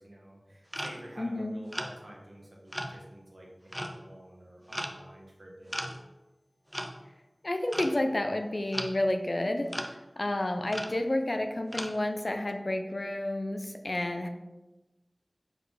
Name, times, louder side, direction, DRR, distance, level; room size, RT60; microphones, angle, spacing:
voice 1, 0.0-5.8, right 1 dB, 60° right, -2 dB, 1.6 m, -49 dB
sound 1, 0.7-1.2 1.7-1.9 2.7-3.0 3.7-4.0 4.7-5.1 5.7-6.1 6.7-6.9 7.7-8.0 8.7-9.0 9.7-9.9 10.7-10.9 11.7-11.9, equal, 10° right, 0.6 m, -36 dB
voice 2, 1.2-1.6 7.4-9.7 10.2-14.3, left 1 dB, 50° left, 6 dB, 0.5 m, -30 dB
4.6 x 4.4 x 4.9 m, 1.1 s
wide cardioid pair, 55°, 0 cm